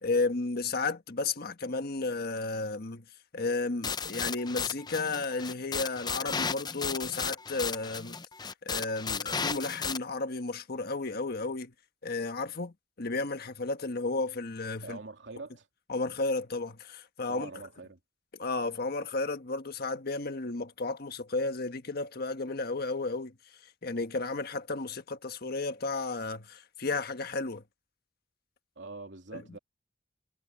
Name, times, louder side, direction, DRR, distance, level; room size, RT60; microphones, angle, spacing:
voice 1, 0.0-3.0 3.3-8.2 8.6-11.7 12.0-15.0 15.9-17.5 18.4-23.3 23.8-27.6 29.3-29.6, left 3 dB, 60° left, 1.4 m, -33 dB
sound 1, 3.8-10.0, left 5 dB, 25° left, 0.6 m, -34 dB
voice 2, 14.8-15.7 17.3-18.0 28.8-29.6, right 3 dB, 80° right, 2.8 m, -44 dB
head